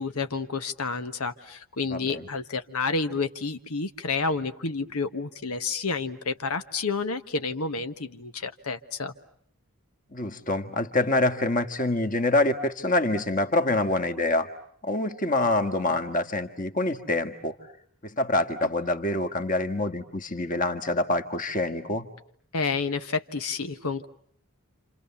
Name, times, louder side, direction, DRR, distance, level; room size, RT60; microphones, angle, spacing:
voice 1, 0.0-9.1 22.5-24.1, left 4 dB, 90° left, 9 dB, 1.3 m, -30 dB
voice 2, 1.9-2.3 10.1-14.5 14.8-17.6 18.0-22.1, left 2 dB, 35° left, 9 dB, 1.7 m, -26 dB
30.0 x 27.5 x 7.1 m, 0.63 s
head